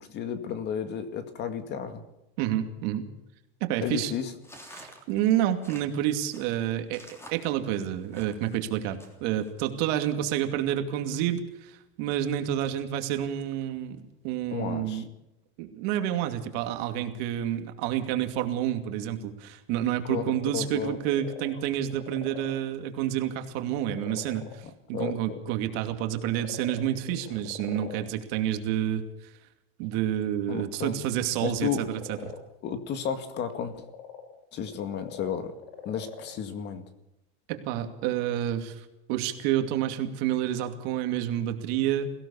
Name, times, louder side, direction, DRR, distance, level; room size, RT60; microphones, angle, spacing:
voice 1, 0.0-2.0 3.8-4.3 14.5-15.0 20.1-20.2 20.5-21.0 24.9-25.4 30.5-30.9 31.4-31.8 32.6-33.8 34.5-35.5 35.9-36.8, left 8 dB, 35° left, 9 dB, 2.1 m, -32 dB
voice 2, 2.4-3.1 3.6-4.1 4.7-15.0 15.6-24.6 24.9-29.3 29.8-32.3 37.5-42.1, right 11 dB, 55° right, 6 dB, 2.6 m, -29 dB
sound 1, 4.4-8.6 9.0-9.5, equal, 10° left, 3.5 m, -49 dB
sound 2, 21.0-22.6 23.2-23.3 23.7-24.5 25.9-28.0 31.7-32.4 33.5-36.3, left 8 dB, 80° left, 5.1 m, -43 dB
22.5 x 16.5 x 7.0 m, 0.93 s
supercardioid pair, 155°, 31 cm